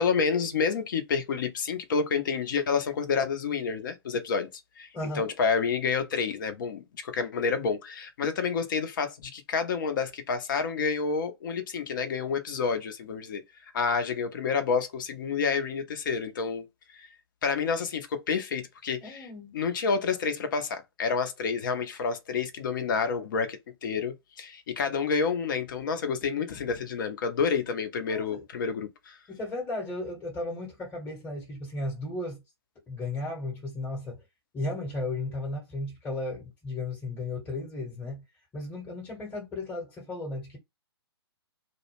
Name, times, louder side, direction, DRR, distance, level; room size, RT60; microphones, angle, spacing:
voice 1, 0.0-4.5 4.8-4.9 5.2-13.4 13.7-16.7 16.9-17.1 17.4-19.3 19.5-29.2, left 5 dB, 50° left, 0.7 m, -29 dB
voice 2, 4.9-5.3 19.0-19.5 28.1-28.4 29.3-32.4 32.9-34.2 34.5-38.2 38.5-40.6, left 2 dB, 10° left, 1.0 m, -35 dB
2.2 x 2.1 x 3.0 m
figure-of-eight pair, 125°, 14 cm